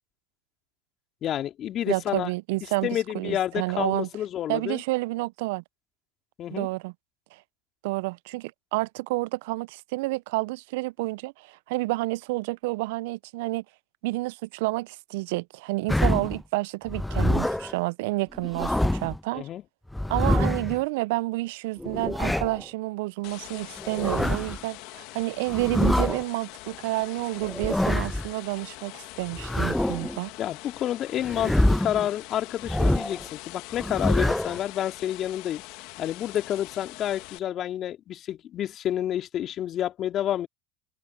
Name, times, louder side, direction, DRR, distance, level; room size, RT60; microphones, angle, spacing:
voice 1, 1.2-2.3 2.8-4.8 6.4-6.7 19.3-19.6 30.4-35.6 36.0-40.5, left 11 dB, 45° left, 2.6 m, -29 dB
voice 2, 1.9-2.9 3.1-4.1 4.5-5.6 6.5-6.9 7.3-7.4 7.8-13.6 14.0-19.5 20.1-30.3, right 22 dB, 70° right, 0.7 m, -29 dB
sound 1, 15.9-16.4 16.9-17.7 18.3-19.2 19.9-20.8 21.8-22.6 23.8-24.6 25.5-26.2 27.4-28.3 29.3-30.2 31.2-32.1 32.6-33.2 33.7-34.6, left 1 dB, 5° left, 1.0 m, -25 dB
sound 2, 23.2-37.4, left 24 dB, 65° left, 2.1 m, -43 dB
hypercardioid pair, 75°, 0 cm